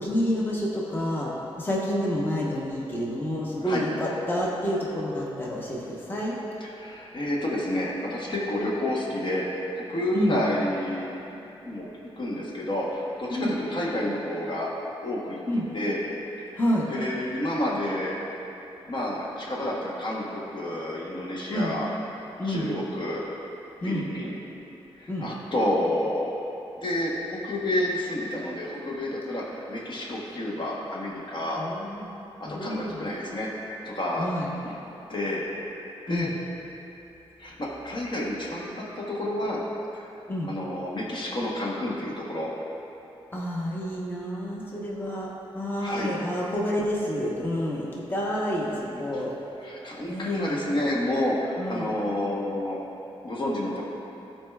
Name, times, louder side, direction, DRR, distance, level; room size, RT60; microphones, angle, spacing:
voice 1, 0.0-6.4 10.1-10.4 13.3-13.6 15.5-15.6 16.6-16.9 21.5-21.7 22.4-22.7 23.8-24.1 25.1-25.3 31.6-32.1 32.4-33.0 34.2-34.5 36.1-36.3 40.3-40.5 43.3-49.3 50.1-50.6 51.6-51.9, equal, 20° left, -4 dB, 1.0 m, -29 dB
voice 2, 6.6-11.2 11.6-11.9 12.2-14.7 15.0-15.4 15.7-16.0 16.5-16.6 16.9-18.2 18.9-21.9 22.4-23.2 23.8-24.4 25.0-26.3 26.8-31.6 32.4-34.3 34.6-34.7 35.1-35.4 36.1-36.3 37.4-39.6 39.9-40.1 40.5-42.5 45.8-46.2 48.9-49.2 49.6-52.8 53.2-53.8, left 1 dB, 50° left, -4 dB, 1.1 m, -29 dB
13.0 x 4.3 x 2.3 m, 3.0 s
wide cardioid pair, 100°, 10 cm